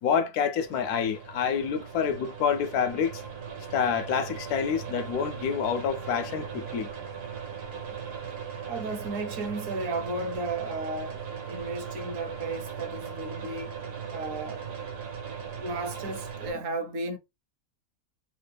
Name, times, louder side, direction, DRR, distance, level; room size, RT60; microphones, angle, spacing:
voice 1, 0.0-3.2 3.7-6.9, left 7 dB, 75° left, 1.1 m, -27 dB
sound 1, 0.6-16.5, right 7 dB, 85° right, 1.4 m, -38 dB
voice 2, 8.7-13.8 14.1-14.7 15.6-17.2, right 2 dB, 65° right, 0.9 m, -34 dB
3.5 x 2.2 x 3.2 m
omnidirectional pair, 1.6 m